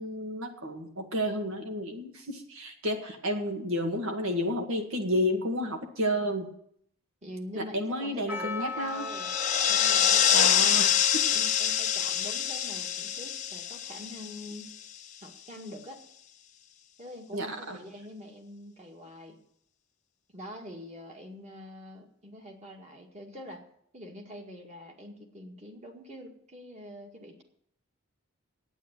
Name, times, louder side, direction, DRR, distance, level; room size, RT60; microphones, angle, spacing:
voice 1, 0.0-6.5 7.6-9.1 10.3-11.3 17.3-17.8, equal, 75° right, 4 dB, 2.0 m, -31 dB
voice 2, 7.2-9.3 9.7-10.8 11.3-14.7 15.2-16.0 17.0-19.4 20.3-23.6 23.9-27.4, equal, 30° right, 2 dB, 1.9 m, -45 dB
Percussion, 8.3-13.2, left 3 dB, 10° right, 0.8 m, -41 dB
sound 1, 9.0-14.8, left 9 dB, 35° left, 0.6 m, -26 dB
9.3 x 9.0 x 8.9 m, 0.70 s
head